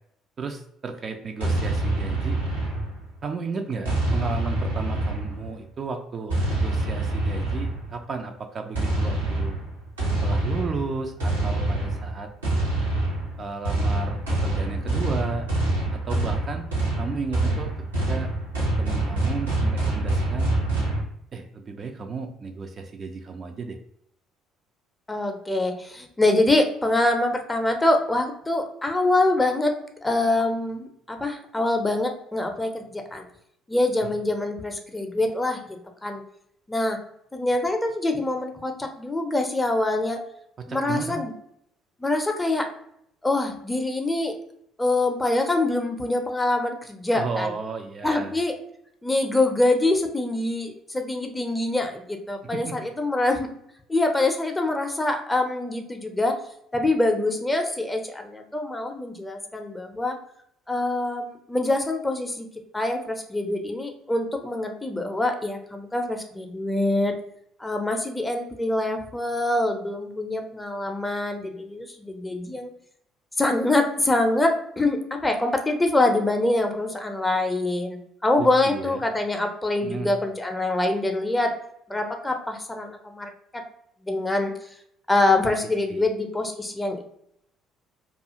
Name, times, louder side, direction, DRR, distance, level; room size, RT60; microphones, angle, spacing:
voice 1, 0.4-2.4 3.2-9.6 10.2-12.3 13.4-15.5 15.9-16.7 17.0-18.3 18.6-20.5 21.3-23.8 34.0-34.1 40.6-41.2 47.1-48.4 52.4-52.8 78.4-79.0 79.8-80.1 85.9-86.0, right 4 dB, 40° right, 5 dB, 0.3 m, -34 dB
sound 1, 1.4-3.2 3.8-5.6 6.3-7.9 8.7-21.0, right 2 dB, 85° right, 0.7 m, -26 dB
voice 2, 25.1-29.7 30.0-33.3 33.7-36.2 36.7-37.0 37.3-40.2 40.7-41.3 42.0-42.7 43.2-44.4 44.8-47.5 48.0-48.6 49.0-53.5 53.9-56.4 56.7-60.2 60.7-62.5 62.7-67.1 67.6-72.7 73.4-81.6 81.9-83.6 84.0-84.5 85.1-87.0, left 2 dB, 15° left, 4 dB, 0.5 m, -25 dB
2.4 x 2.3 x 2.7 m, 0.74 s
figure-of-eight pair, 50°, 0 cm